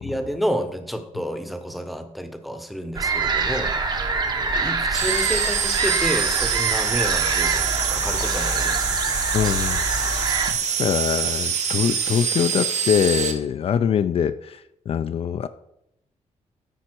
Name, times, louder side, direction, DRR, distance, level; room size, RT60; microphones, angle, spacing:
voice 1, 0.0-3.7 4.5-7.6 7.9-9.0, equal, ahead, 8 dB, 0.8 m, -30 dB
sound 1, 2.9-10.5, right 4 dB, 35° right, 0.9 m, -25 dB
sound 2, 4.9-13.3, right 6 dB, 70° right, 1.1 m, -25 dB
voice 2, 9.3-10.2 10.7-15.5, left 8 dB, 50° left, 11 dB, 0.4 m, -24 dB
13.0 x 5.2 x 4.5 m, 0.79 s
wide cardioid pair, 160°, 13 cm